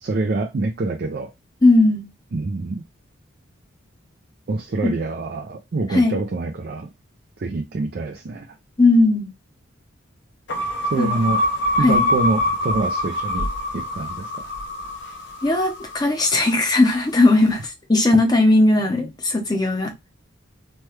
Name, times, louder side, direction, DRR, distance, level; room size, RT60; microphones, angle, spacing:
voice 1, 0.0-1.3 2.3-2.8 4.5-6.9 7.4-8.6 10.8-11.4 11.8-13.5 13.7-14.4, right 3 dB, 50° right, 0.4 m, -26 dB
voice 2, 1.6-2.0 4.8-4.9 5.9-6.2 8.8-9.3 11.0-11.3 11.8-12.0 15.4-19.9, left 2 dB, 20° left, 0.6 m, -17 dB
sound 1, 10.5-16.8, left 1 dB, 60° left, 0.7 m, -25 dB
3.2 x 2.2 x 3.0 m
head